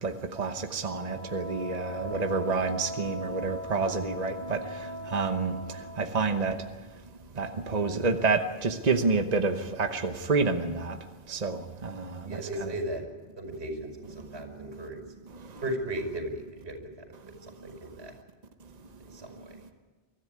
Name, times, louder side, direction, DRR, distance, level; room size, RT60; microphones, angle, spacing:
voice 1, 0.0-5.6 6.0-6.6 7.4-11.0 11.3-12.4, right 4 dB, 40° right, 6 dB, 1.2 m, -28 dB
Wind instrument woodwind instrument, 0.9-6.1, left 1 dB, 15° right, 3.1 m, -40 dB
voice 2, 12.3-13.0 13.4-15.0 15.6-17.1 17.4-18.1 19.0-19.6, right 1 dB, 85° right, 4 dB, 5.5 m, -36 dB
24.0 x 14.5 x 9.7 m, 1.3 s
omnidirectional pair, 1.1 m